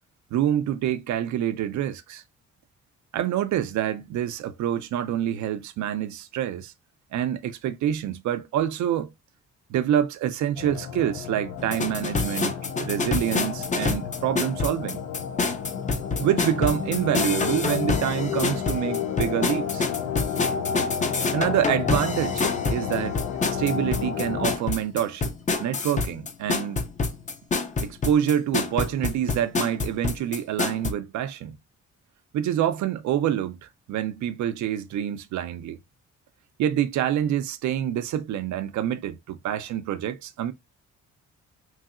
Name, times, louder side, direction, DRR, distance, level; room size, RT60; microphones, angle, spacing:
voice 1, 0.3-2.2 3.1-6.7 7.1-9.1 9.7-15.0 16.2-19.9 21.3-23.2 23.5-25.3 25.6-26.9 27.8-31.6 32.3-35.8 36.6-40.5, right 10 dB, 70° right, 0.5 m, -26 dB
sound 1, 10.6-24.6, left 7 dB, 70° left, 0.6 m, -31 dB
sound 2, 11.6-30.9, left 4 dB, 25° left, 0.5 m, -27 dB
3.1 x 2.7 x 2.4 m
cardioid pair, 90°, 30 cm